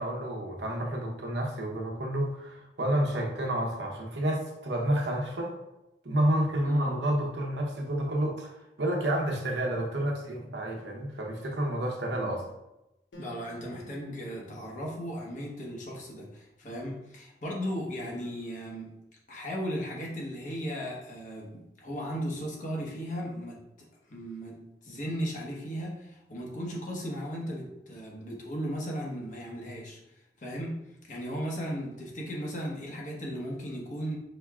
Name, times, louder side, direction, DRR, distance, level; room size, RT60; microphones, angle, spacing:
voice 1, 0.0-5.5 6.0-12.5, right 1 dB, 75° right, 0 dB, 0.9 m, -30 dB
Acoustic guitar, 13.1-16.6, right 1 dB, 90° left, 0.8 m, -52 dB
voice 2, 13.1-18.9 19.3-23.6 24.1-30.8 31.0-34.2, equal, 45° left, -3 dB, 1.0 m, -36 dB
5.2 x 3.5 x 2.4 m, 0.91 s
head